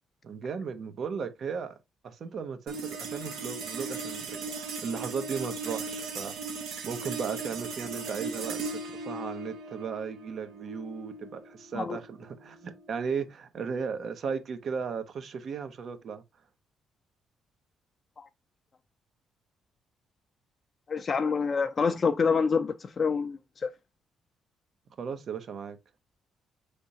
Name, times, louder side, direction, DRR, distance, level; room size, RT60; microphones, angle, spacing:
voice 1, 0.2-1.8 2.0-4.4 4.8-6.3 6.8-16.2 25.0-25.8, right 6 dB, 60° right, 0.9 m, -36 dB
sound 1, 2.7-13.3, right 4 dB, 85° right, 1.2 m, -38 dB
voice 2, 20.9-23.7, left 5 dB, 40° left, 0.4 m, -27 dB
5.3 x 3.5 x 2.8 m
cardioid pair, 90°, 0 cm